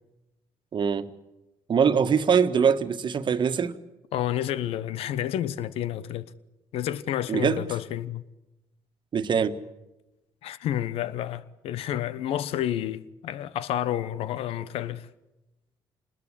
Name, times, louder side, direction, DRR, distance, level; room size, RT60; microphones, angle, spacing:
voice 1, 0.7-1.1 1.7-3.8 7.3-7.6 9.1-9.6, right 6 dB, 50° right, 1.6 m, -23 dB
voice 2, 4.1-6.3 6.7-8.2 10.4-15.1, left 11 dB, 65° left, 1.1 m, -30 dB
27.5 x 20.5 x 8.4 m
hypercardioid pair, 50°, 11 cm